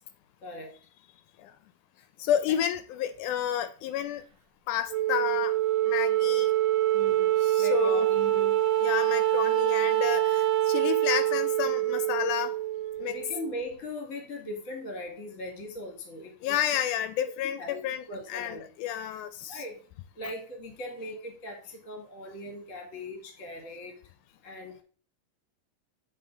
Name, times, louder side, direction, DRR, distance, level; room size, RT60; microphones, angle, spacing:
voice 1, 0.4-0.7 6.9-8.6 13.1-16.6 17.6-17.8 18.1-18.6 19.5-19.8 20.1-23.9 24.4-24.8, left 1 dB, 35° left, 1.5 m, -39 dB
voice 2, 2.2-4.2 4.7-5.5 5.8-6.5 7.4-8.1 8.8-12.6 13.0-13.2 16.4-19.6, left 10 dB, 80° left, 2.0 m, -30 dB
Wind instrument woodwind instrument, 4.9-13.5, right 14 dB, 90° right, 2.4 m, -25 dB
8.3 x 3.9 x 3.7 m
omnidirectional pair, 3.7 m